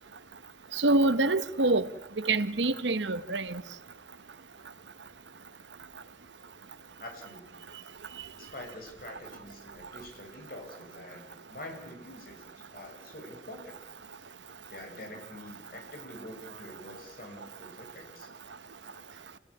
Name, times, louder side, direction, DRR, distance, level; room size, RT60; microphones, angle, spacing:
voice 1, 0.7-1.9 2.2-3.6, right 2 dB, 80° right, 1.1 m, -26 dB
voice 2, 7.0-7.6 8.4-13.8 14.7-18.3, left 1 dB, 50° left, 6.5 m, -46 dB
29.0 x 17.0 x 9.9 m
head